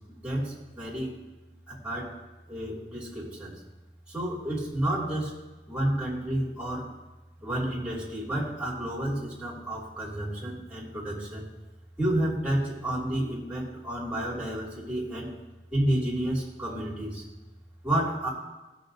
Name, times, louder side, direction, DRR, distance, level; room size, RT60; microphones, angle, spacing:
voice 1, 0.2-1.1 1.7-2.1 2.5-3.5 4.1-6.9 7.4-11.5 12.0-15.3 15.7-17.2 17.8-18.3, right 1 dB, 5° right, -7 dB, 2.8 m, -30 dB
17.5 x 6.3 x 2.7 m, 1.1 s
head